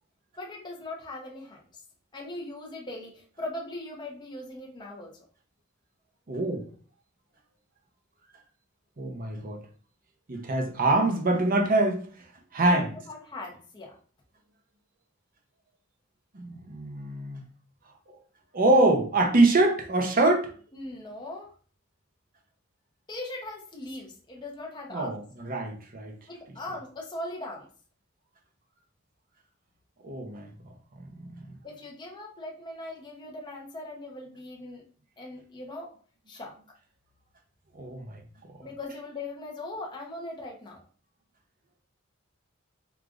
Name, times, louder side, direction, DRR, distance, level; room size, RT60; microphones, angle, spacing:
voice 1, 0.4-1.6 2.1-5.1 12.6-14.0 20.7-21.5 23.1-25.2 26.3-27.7 31.6-34.8 35.2-35.9 36.3-36.5 38.6-40.8, left 2 dB, 20° left, 0.7 m, -39 dB
voice 2, 6.3-6.6 9.0-9.6 10.3-12.1 12.5-12.9 16.3-17.4 18.5-20.5 24.9-26.1 30.0-30.5 31.2-31.3 37.8-38.2, right 2 dB, 45° right, 0.7 m, -24 dB
4.9 x 2.4 x 2.4 m
head